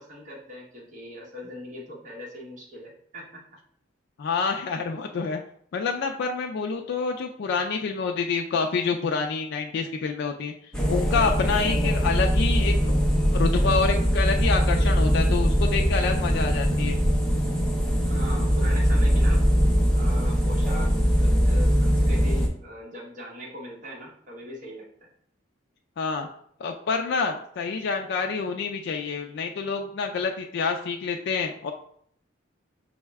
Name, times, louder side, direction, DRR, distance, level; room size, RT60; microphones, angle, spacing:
voice 1, 0.0-3.4 18.0-19.4 19.9-24.9, left 1 dB, 45° right, -4 dB, 1.1 m, -40 dB
voice 2, 4.2-5.4 5.7-10.5 10.9-13.0 13.3-17.0 26.0-26.3 26.6-31.7, left 5 dB, 60° left, 3 dB, 0.3 m, -27 dB
sound 1, 10.7-22.5, equal, 5° left, 0.5 m, -22 dB
5.5 x 2.1 x 3.4 m, 0.66 s
head